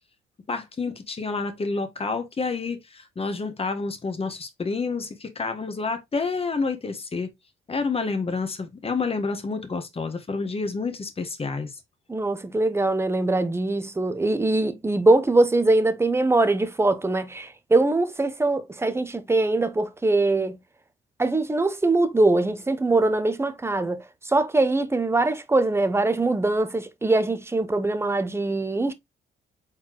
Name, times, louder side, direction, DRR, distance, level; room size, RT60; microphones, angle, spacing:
voice 1, 0.5-7.3 7.7-11.7, left 4 dB, 30° left, 1.3 m, -29 dB
voice 2, 12.1-20.6 21.2-28.9, right 2 dB, 10° right, 0.7 m, -22 dB
4.3 x 4.0 x 3.0 m
cardioid pair, 90°, 20 cm